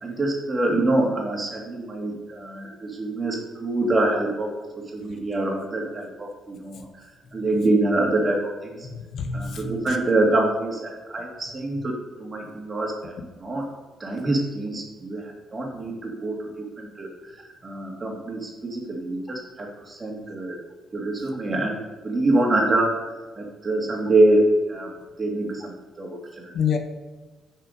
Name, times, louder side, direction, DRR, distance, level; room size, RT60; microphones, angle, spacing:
voice 1, 0.0-4.5 4.9-6.9 7.3-8.9 9.3-13.1 13.4-13.7 14.0-16.5 16.8-20.6 20.9-21.8 22.0-22.9 23.4-24.9 25.2-26.5, right 2 dB, 30° right, 0 dB, 2.2 m, -25 dB
voice 2, 8.8-10.0 26.5-26.8, left 6 dB, 65° left, 5 dB, 1.0 m, -27 dB
6.6 x 6.1 x 5.1 m, 1.3 s
cardioid pair, 90°, 0 cm